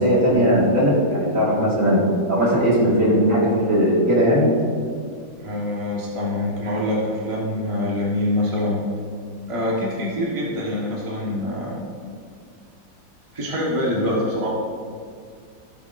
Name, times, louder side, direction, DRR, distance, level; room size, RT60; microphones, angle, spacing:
voice 1, 0.0-2.0 2.3-4.5, equal, 45° right, -5 dB, 2.4 m, -18 dB
voice 2, 5.4-8.8 9.5-11.8 13.3-14.5, left 1 dB, 20° right, -5 dB, 1.3 m, -25 dB
14.5 x 7.9 x 2.6 m, 2.2 s
omnidirectional pair, 2.0 m